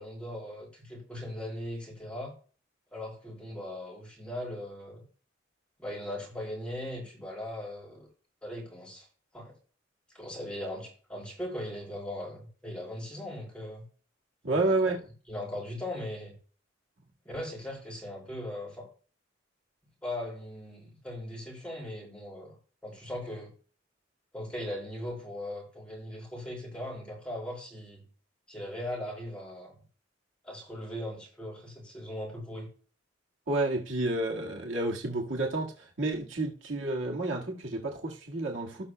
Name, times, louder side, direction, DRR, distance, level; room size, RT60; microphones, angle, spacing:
voice 1, 0.0-2.4 2.9-5.0 5.8-8.1 8.4-9.1 9.3-9.5 10.1-13.8 14.5-14.9 15.3-16.4 17.2-18.9 20.0-22.6 22.8-23.5 24.3-28.0 28.5-29.7 30.4-32.7, left 1 dB, 5° left, 5.0 m, -39 dB
voice 2, 14.4-15.0 33.5-38.9, right 2 dB, 90° right, 1.7 m, -30 dB
18.0 x 6.0 x 2.2 m
head